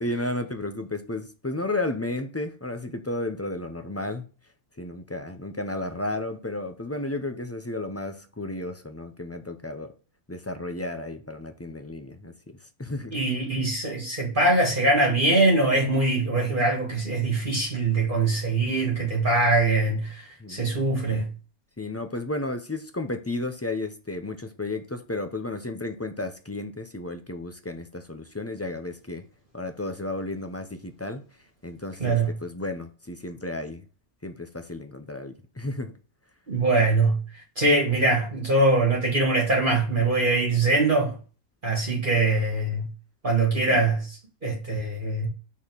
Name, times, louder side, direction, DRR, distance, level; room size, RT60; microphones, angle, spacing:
voice 1, 0.0-4.2 4.8-9.9 10.3-13.2 20.4-20.6 21.8-29.2 29.5-31.2 31.6-33.8 34.2-35.9 43.7-43.9, left 2 dB, 25° left, 0.3 m, -33 dB
voice 2, 13.1-21.3 32.0-32.3 36.5-37.2 37.6-41.1 41.6-42.9 43.2-45.3, right 2 dB, 35° right, 1.9 m, -23 dB
5.5 x 4.3 x 6.2 m
omnidirectional pair, 1.5 m